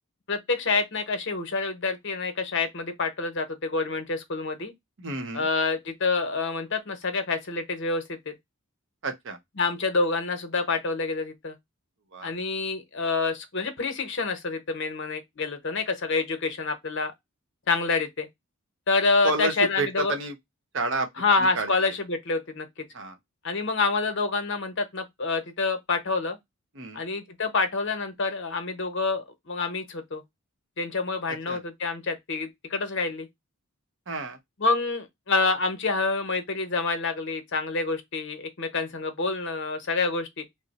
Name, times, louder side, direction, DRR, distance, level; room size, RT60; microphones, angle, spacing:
voice 1, 0.3-4.7 5.3-8.3 9.6-11.5 12.2-17.1 17.7-18.3 18.9-20.2 21.2-22.7 23.4-26.4 26.9-30.2 30.8-33.3 34.6-40.4, left 3 dB, 55° left, 0.7 m, -27 dB
voice 2, 5.0-5.5 9.0-9.4 12.1-12.3 19.2-20.4 20.7-21.1 21.6-21.7 22.9-23.2 26.8-27.0 31.5-31.6 34.1-34.4, right 2 dB, 55° right, 0.7 m, -29 dB
2.9 x 2.0 x 3.9 m
head